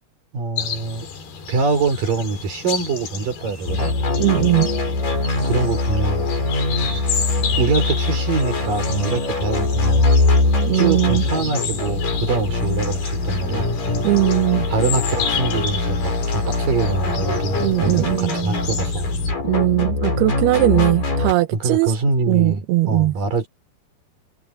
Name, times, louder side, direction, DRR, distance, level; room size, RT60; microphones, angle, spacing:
voice 1, 0.3-1.1 1.5-3.9 5.4-6.3 7.6-10.0 10.7-13.7 14.7-19.1 21.5-23.5, right 4 dB, 55° right, 6.6 m, -24 dB
sound 1, 0.6-19.3, left 6 dB, 70° left, 5.4 m, -32 dB
sound 2, 3.7-21.3, left 2 dB, 55° left, 9.6 m, -22 dB
voice 2, 4.2-4.7 10.7-11.2 14.0-14.6 17.6-18.3 19.4-21.9 22.3-23.1, right 18 dB, 80° right, 2.7 m, -19 dB
omnidirectional pair, 4.8 m